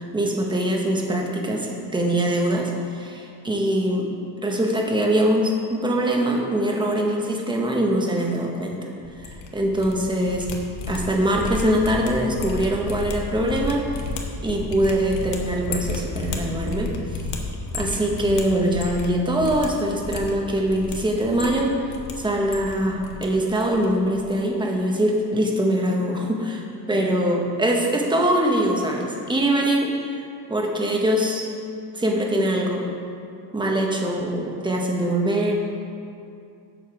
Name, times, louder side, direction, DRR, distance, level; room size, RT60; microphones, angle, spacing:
voice 1, 0.0-4.1 4.4-8.8 9.2-10.5 10.9-13.8 14.4-16.9 17.7-21.7 22.2-30.2 30.5-31.5 31.9-32.9 33.5-35.5, right 1 dB, 10° right, 0 dB, 0.9 m, -23 dB
sound 1, 9.0-9.9 10.2-19.1 19.4-19.7 20.0-20.9 21.3-22.1 22.4-23.2 23.5-23.9 24.1-24.3, left 2 dB, 85° left, 1.1 m, -32 dB
7.4 x 6.5 x 4.8 m, 2.5 s
cardioid pair, 140°, 42 cm